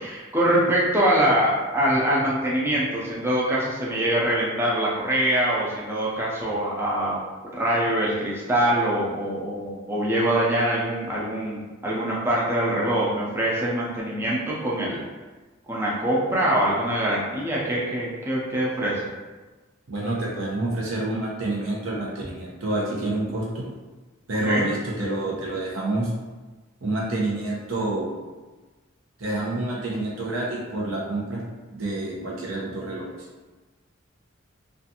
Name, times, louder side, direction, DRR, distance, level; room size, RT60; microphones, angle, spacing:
voice 1, 0.0-7.2 7.5-15.0 15.7-19.0 24.5-24.6, right 1 dB, 10° right, -5 dB, 0.4 m, -24 dB
voice 2, 19.9-23.7 24.3-26.1 26.8-28.1 29.2-31.4 31.7-33.1, right 2 dB, 90° right, -4 dB, 0.8 m, -28 dB
2.4 x 2.4 x 2.7 m, 1.3 s
head